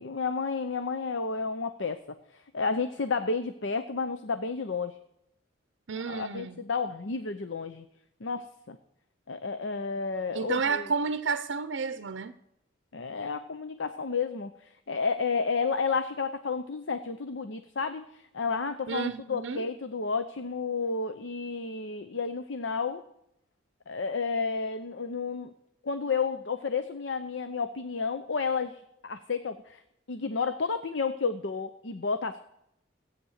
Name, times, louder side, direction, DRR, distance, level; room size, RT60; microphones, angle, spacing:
voice 1, 0.0-2.0 2.3-4.9 6.1-7.9 8.2-8.8 9.3-10.9 12.9-23.0 23.9-25.5 25.8-29.8 30.1-32.4, left 4 dB, 70° left, 0.7 m, -31 dB
voice 2, 5.9-6.6 10.3-12.3 18.9-19.6, right 5 dB, 70° right, 0.6 m, -31 dB
16.0 x 8.9 x 6.5 m
head